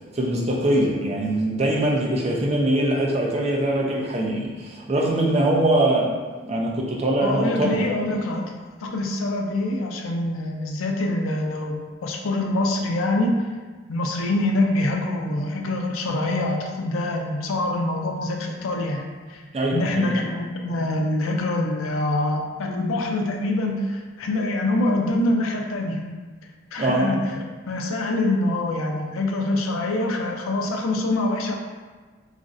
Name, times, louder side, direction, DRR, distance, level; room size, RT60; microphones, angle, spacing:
voice 1, 0.1-6.1 6.4-7.8 19.5-20.2 26.8-27.1, right 1 dB, 30° right, -2 dB, 0.4 m, -22 dB
voice 2, 7.2-8.5 8.8-13.3 13.9-19.0 19.3-19.4 19.7-26.2 26.7-31.5, left 2 dB, 90° left, 1 dB, 0.4 m, -25 dB
3.0 x 2.4 x 2.6 m, 1.4 s
head